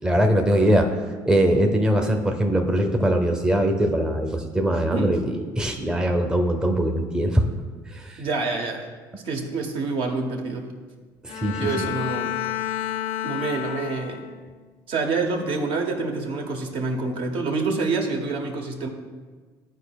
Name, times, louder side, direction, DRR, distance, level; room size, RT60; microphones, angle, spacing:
voice 1, 0.0-1.0 1.3-7.4 7.9-8.2 11.2-11.9, right 1 dB, 5° right, 4 dB, 0.6 m, -22 dB
voice 2, 8.2-8.9 9.2-10.7 11.5-12.3 13.2-14.2 14.9-18.9, right 3 dB, 60° right, 3 dB, 0.9 m, -27 dB
Bowed string instrument, 11.3-14.5, left 12 dB, 70° left, 0.4 m, -30 dB
11.0 x 4.5 x 2.3 m, 1.4 s
supercardioid pair, 95°, 10 cm